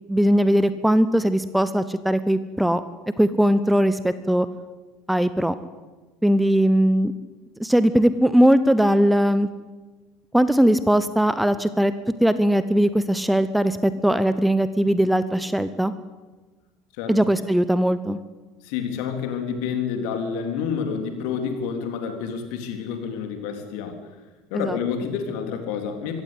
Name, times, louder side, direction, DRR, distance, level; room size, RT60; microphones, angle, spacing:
voice 1, 0.1-2.8 3.2-4.5 5.1-5.5 6.2-7.1 7.6-9.5 10.3-11.9 12.2-15.9 17.1-18.2 24.5-24.8, equal, 5° right, 14 dB, 1.0 m, -19 dB
voice 2, 18.6-24.0 24.5-26.2, left 6 dB, 55° left, 5 dB, 3.6 m, -29 dB
24.5 x 16.0 x 8.4 m, 1.3 s
figure-of-eight pair, 65°, 0 cm